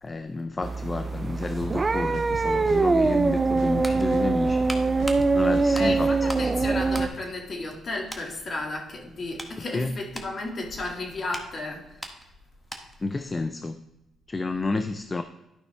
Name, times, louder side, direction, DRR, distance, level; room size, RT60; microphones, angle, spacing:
voice 1, 0.0-4.6 5.3-6.1 9.7-10.0 13.0-13.8 14.3-15.2, left 3 dB, 25° left, 9 dB, 0.4 m, -30 dB
sound 1, 0.6-7.1, right 3 dB, 25° right, 0.5 m, -23 dB
sound 2, 1.6-1.7 2.1-3.1 3.6-4.7 5.0-7.2, left 1 dB, 85° left, 1.6 m, -40 dB
sound 3, 3.8-6.5 6.9-7.8 8.1-8.3 8.9-13.1 13.4-13.6, equal, 5° left, 1.2 m, -41 dB
voice 2, 5.7-12.0, left 2 dB, 45° left, 1 dB, 2.1 m, -33 dB
12.0 x 5.4 x 3.4 m, 0.94 s
cardioid pair, 90°, 0 cm